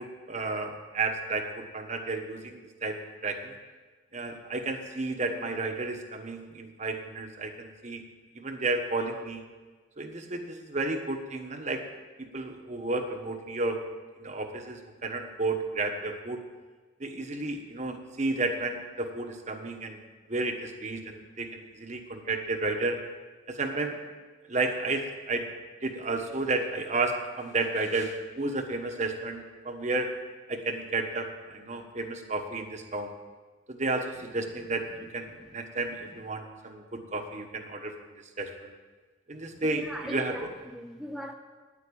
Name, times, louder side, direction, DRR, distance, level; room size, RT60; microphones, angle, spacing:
voice 1, 0.0-3.5 4.1-8.0 8.3-9.4 10.0-11.8 12.2-13.8 14.2-16.4 17.0-20.0 20.3-23.0 23.5-24.0 24.5-25.5 25.8-30.1 30.5-33.1 33.7-34.9 35.1-38.7 39.3-40.5, right 3 dB, 40° right, 5 dB, 1.2 m, -32 dB
voice 2, 39.5-41.3, equal, ahead, 1 dB, 0.6 m, -41 dB
10.0 x 8.5 x 8.7 m, 1.4 s
head